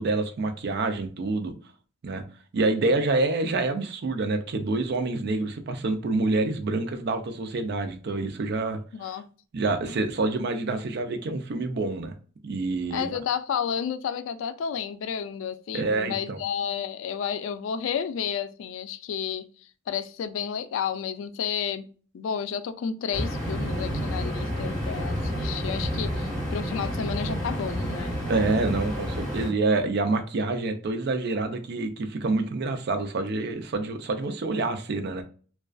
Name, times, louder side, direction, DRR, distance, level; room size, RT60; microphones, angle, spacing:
voice 1, 0.0-1.5 2.0-2.2 2.5-9.1 9.5-12.1 12.4-13.2 15.7-16.4 28.3-35.2, right 3 dB, 55° right, 0.4 m, -27 dB
voice 2, 8.9-9.2 12.9-19.5 19.9-21.9 22.1-28.1, left 7 dB, 75° left, 0.3 m, -31 dB
sound 1, 23.1-29.5, equal, 5° left, 1.1 m, -30 dB
2.4 x 2.3 x 2.2 m
head